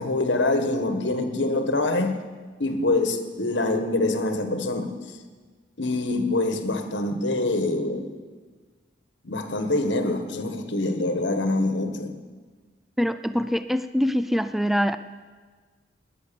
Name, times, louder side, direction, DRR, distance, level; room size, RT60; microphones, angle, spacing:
voice 1, 0.0-2.2 2.6-4.9 5.8-8.1 9.2-12.1, left 2 dB, 70° left, 7 dB, 1.5 m, -25 dB
voice 2, 13.0-15.0, equal, ahead, 11 dB, 0.4 m, -24 dB
20.0 x 9.6 x 7.0 m, 1.5 s
head